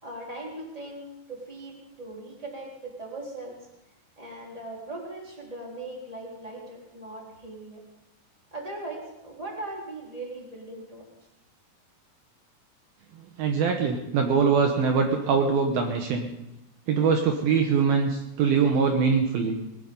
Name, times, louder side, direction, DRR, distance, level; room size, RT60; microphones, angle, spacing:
voice 1, 0.0-3.6 4.2-7.8 8.5-11.0, right 2 dB, 10° right, -2 dB, 3.2 m, -39 dB
voice 2, 13.4-16.3 16.9-19.6, right 5 dB, 70° right, 3 dB, 2.7 m, -23 dB
20.5 x 11.0 x 5.3 m, 0.90 s
omnidirectional pair, 4.7 m